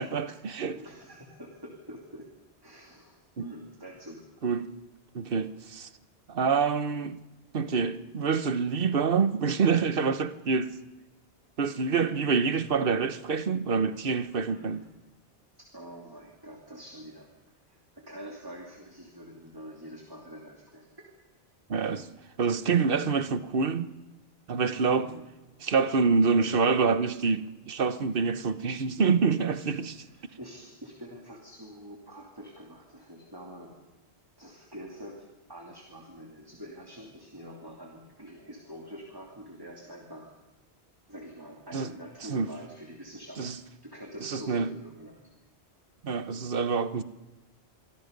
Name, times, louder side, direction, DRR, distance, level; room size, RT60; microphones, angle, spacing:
voice 1, 0.0-0.8 3.4-3.5 4.4-4.7 5.1-5.9 6.3-7.2 7.5-10.7 11.6-14.8 21.7-22.1 22.4-23.9 24.5-25.1 25.6-29.9 41.7-41.9 42.3-42.5 43.4-43.5 44.2-44.7 46.0-47.0, right 5 dB, 55° right, 1.2 m, -26 dB
voice 2, 0.7-2.3 2.6-4.2 14.5-14.9 15.6-21.1 25.0-25.3 30.0-33.7 34.4-40.3 41.1-43.5 43.8-45.2, equal, 20° right, 2.9 m, -46 dB
27.5 x 24.0 x 5.3 m
omnidirectional pair, 1.1 m